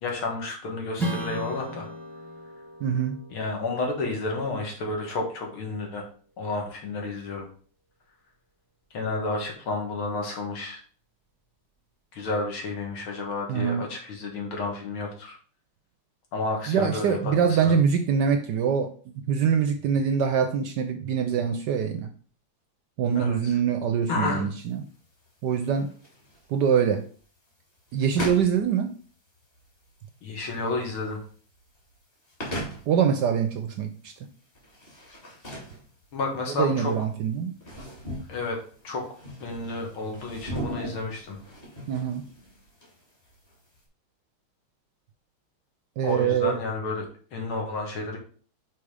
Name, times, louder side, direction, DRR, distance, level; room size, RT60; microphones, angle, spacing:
voice 1, 0.0-1.9 3.3-6.1 6.4-7.5 8.9-10.8 12.1-15.4 16.3-17.7 23.1-23.6 24.1-24.5 30.2-31.2 36.1-36.9 38.3-38.6 38.8-39.1 39.4-41.4 46.0-48.2, left 3 dB, 80° left, 1 dB, 2.5 m, -31 dB
Strum, 1.0-5.9, right 1 dB, ahead, 1.1 m, -37 dB
voice 2, 2.8-3.2 13.5-13.8 16.7-18.9 19.3-22.1 23.0-24.8 25.4-25.9 26.5-27.1 27.9-28.9 32.9-34.1 36.6-37.5 41.9-42.2 46.0-46.6, right 7 dB, 70° right, 8 dB, 1.0 m, -24 dB
sound 1, 24.6-43.8, equal, 25° left, 2.5 m, -40 dB
5.9 x 4.2 x 4.9 m, 0.43 s
omnidirectional pair, 2.3 m